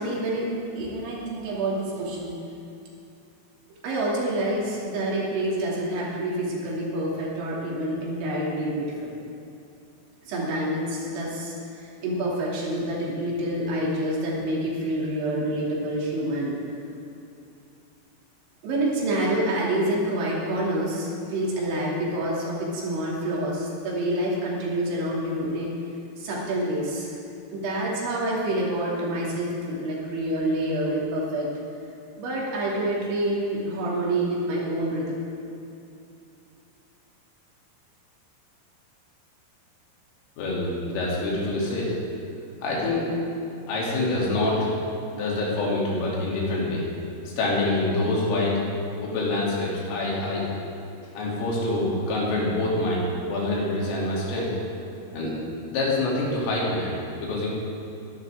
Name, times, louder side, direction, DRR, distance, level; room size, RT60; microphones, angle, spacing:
voice 1, 0.0-2.4 3.8-9.1 10.2-16.6 18.6-25.7 26.2-27.2 27.5-31.5 32.2-35.2, right 1 dB, 65° right, -4 dB, 4.9 m, -27 dB
voice 2, 40.4-41.9 42.6-43.1 43.7-44.7 45.1-46.8 47.4-48.6 49.0-50.5 51.2-54.5 55.1-55.4 55.7-57.5, left 2 dB, 75° left, -5 dB, 5.4 m, -26 dB
22.0 x 11.5 x 3.6 m, 2.7 s
omnidirectional pair, 5.9 m